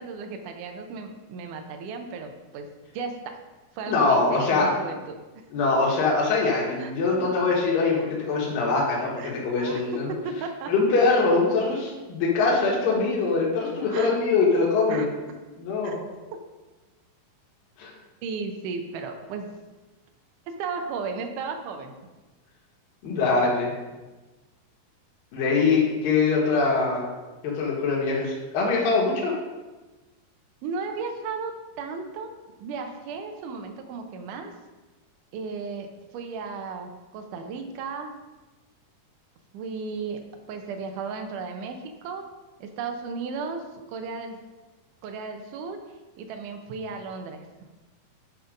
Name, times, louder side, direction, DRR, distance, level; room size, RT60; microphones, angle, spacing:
voice 1, 0.0-2.7 2.9-3.4 3.8-5.2 6.8-6.9 9.2-10.7 13.9-14.1 14.9-15.1 15.8-16.0 18.2-19.5 20.5-21.9 30.6-32.3 32.6-34.5 35.3-38.2 39.5-40.2 40.5-42.2 42.6-44.4 45.0-45.8 46.2-47.5, right 4 dB, 70° right, 5 dB, 2.2 m, -35 dB
voice 2, 3.9-4.7 5.5-10.1 10.7-15.1 15.6-16.0 17.8-17.9 23.0-23.7 25.3-27.1 27.4-29.3, left 3 dB, 75° left, -3 dB, 3.2 m, -23 dB
10.5 x 4.1 x 5.1 m, 1.2 s
omnidirectional pair, 4.1 m